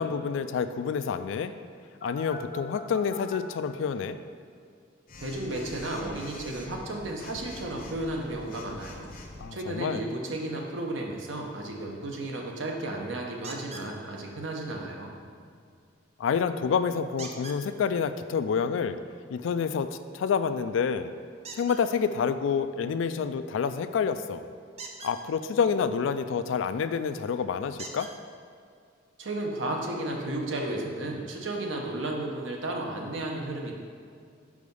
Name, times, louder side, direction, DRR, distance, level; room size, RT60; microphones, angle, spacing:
voice 1, 0.0-1.5 2.0-4.2 9.4-10.1 16.2-19.0 19.3-19.9 20.1-21.1 21.5-24.4 25.0-28.1, left 6 dB, 75° left, 11 dB, 0.3 m, -28 dB
Telephone, 2.0-3.4 5.1-9.4, left 2 dB, 45° left, 0.6 m, -44 dB
voice 2, 5.2-9.1 9.5-15.1 29.2-33.7, right 1 dB, 75° right, 1 dB, 0.9 m, -33 dB
sound 1, 13.4-13.9 17.2-17.6 21.4-21.8 24.7-25.2 26.8-26.9 27.8-28.1 29.1-29.2 29.7-29.8, right 3 dB, 35° right, 0.6 m, -41 dB
4.9 x 4.7 x 5.4 m, 2.2 s
head